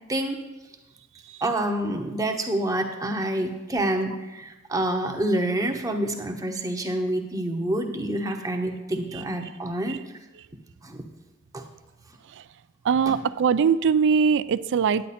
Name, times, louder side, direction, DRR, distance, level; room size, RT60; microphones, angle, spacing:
voice 1, 1.4-10.0 10.8-11.0 11.5-11.6, right 1 dB, 15° right, 3 dB, 0.8 m, -27 dB
voice 2, 12.8-15.1, right 6 dB, 60° right, 16 dB, 0.4 m, -22 dB
9.9 x 8.9 x 4.2 m, 1.1 s
head